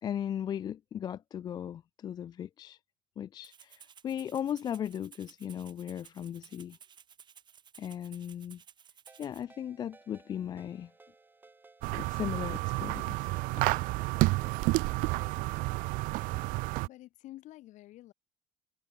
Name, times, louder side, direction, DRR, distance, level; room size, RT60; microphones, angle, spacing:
voice 1, 0.0-2.8 3.2-6.8 7.8-8.6 9.2-10.9 11.9-13.3 13.6-13.7, left 9 dB, 30° left, 0.4 m, -37 dB
Rattle (instrument), 3.4-9.4, right 8 dB, 30° right, 4.5 m, -56 dB
Ringtone, 9.1-15.9, right 3 dB, 15° right, 6.5 m, -60 dB
sound 1, 11.8-16.9, right 23 dB, 70° right, 0.6 m, -30 dB
voice 2, 16.9-18.1, left 15 dB, 55° left, 4.6 m, -49 dB
cardioid pair, 155°, 15 cm